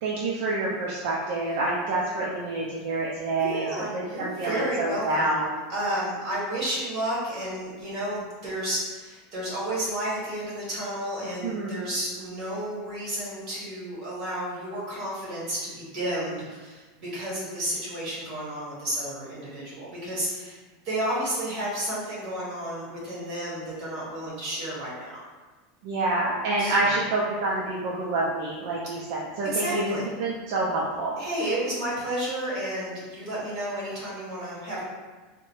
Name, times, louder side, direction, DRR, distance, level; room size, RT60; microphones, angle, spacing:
voice 1, 0.0-3.7 3.9-5.6 11.4-11.8 25.8-31.1, right 2 dB, 55° right, -4 dB, 0.4 m, -27 dB
voice 2, 3.4-5.4 5.7-20.6 20.8-25.2 26.6-26.9 29.5-30.1 31.2-34.8, right 1 dB, 35° right, -7 dB, 1.3 m, -31 dB
3.7 x 2.1 x 3.0 m, 1.3 s
supercardioid pair, 170°, 0 cm